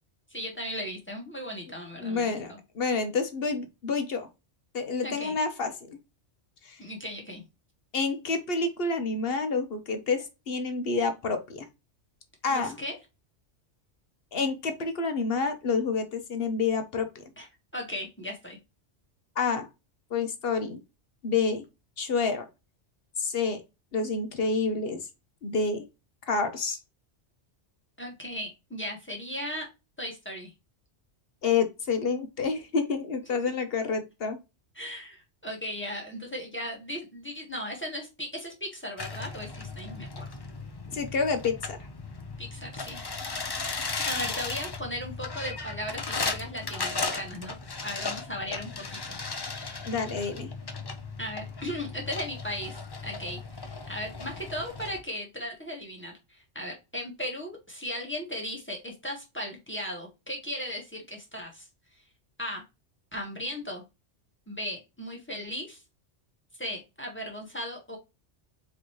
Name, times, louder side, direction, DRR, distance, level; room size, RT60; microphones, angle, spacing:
voice 1, 0.3-2.6 5.0-5.4 6.8-7.4 12.5-13.0 17.4-17.5 17.7-18.6 28.0-29.7 30.0-30.5 34.7-40.3 42.4-43.0 44.0-47.5 47.8-49.2 49.5-49.8 51.2-52.8 53.0-61.7 62.4-62.6 63.1-63.8 64.5-65.8 66.6-68.0, equal, 10° left, 0 dB, 1.5 m, -37 dB
voice 2, 2.0-4.3 4.7-6.0 6.6-6.8 7.9-11.7 12.4-12.8 14.3-17.2 19.4-19.7 20.1-20.8 21.2-21.6 22.0-22.5 23.2-23.6 23.9-25.0 25.4-25.8 26.3-26.8 31.4-34.4 40.9-41.8 49.9-50.5, left 4 dB, 60° left, 7 dB, 1.0 m, -28 dB
sound 1, 39.0-55.0, left 4 dB, 30° left, 0.5 m, -36 dB
4.5 x 3.9 x 3.0 m, 0.25 s
omnidirectional pair, 1.2 m